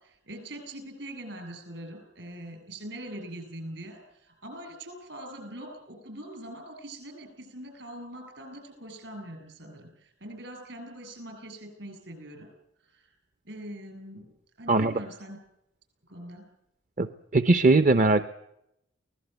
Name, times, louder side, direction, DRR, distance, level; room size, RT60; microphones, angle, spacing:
voice 1, 0.0-12.5 12.8-13.2 13.4-14.3 14.6-15.4 16.1-16.4, right 1 dB, 65° right, 7 dB, 7.9 m, -42 dB
voice 2, 17.3-18.3, right 2 dB, 45° right, 11 dB, 0.8 m, -20 dB
24.0 x 18.0 x 8.1 m, 0.81 s
head